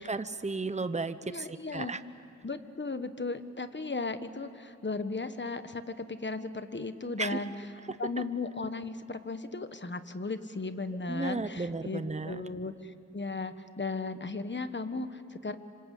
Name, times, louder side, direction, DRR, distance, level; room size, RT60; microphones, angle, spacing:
voice 1, 0.0-2.0 7.2-7.4 11.1-12.4, right 3 dB, 25° right, 12 dB, 0.9 m, -34 dB
voice 2, 1.2-1.9 2.4-7.5 8.0-15.6, left 3 dB, 40° left, 10 dB, 1.3 m, -36 dB
26.0 x 26.0 x 8.4 m, 2.6 s
wide cardioid pair, 55°, 29 cm